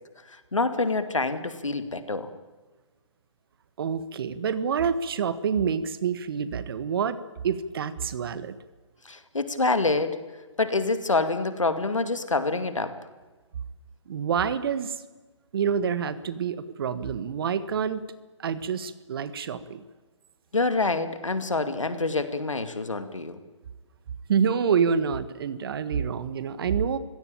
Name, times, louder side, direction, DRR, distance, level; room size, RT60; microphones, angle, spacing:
voice 1, 0.3-2.3 9.0-10.2 10.6-12.9 20.5-23.4, left 3 dB, 90° left, 10 dB, 2.4 m, -26 dB
voice 2, 3.8-7.2 7.4-8.6 14.1-14.9 15.5-18.0 18.4-19.8 24.3-27.0, right 7 dB, 50° right, 14 dB, 1.5 m, -27 dB
26.0 x 16.5 x 8.9 m, 1.3 s
figure-of-eight pair, 140°, 16 cm